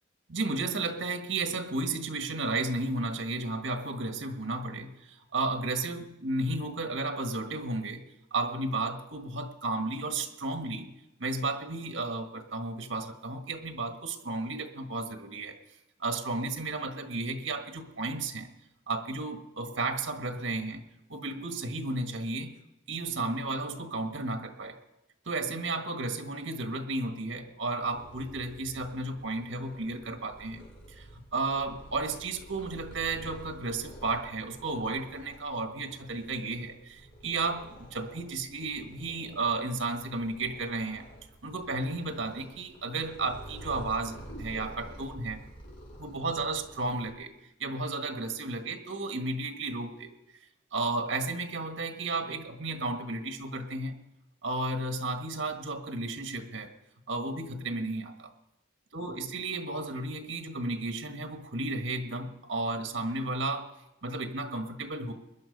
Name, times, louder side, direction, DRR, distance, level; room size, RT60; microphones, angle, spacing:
voice 1, 0.3-8.0 8.3-10.9 11.2-15.6 16.0-18.5 18.9-20.8 21.1-22.6 22.9-24.8 25.2-41.1 41.4-45.4 46.0-47.3 47.6-50.1 50.7-54.0 54.4-56.7 57.1-58.3 58.9-63.7 64.0-65.1, right 2 dB, 85° right, 6 dB, 1.6 m, -33 dB
Purr, 27.8-47.1, equal, 80° left, 4.7 m, -49 dB
21.5 x 10.5 x 5.3 m, 0.93 s
head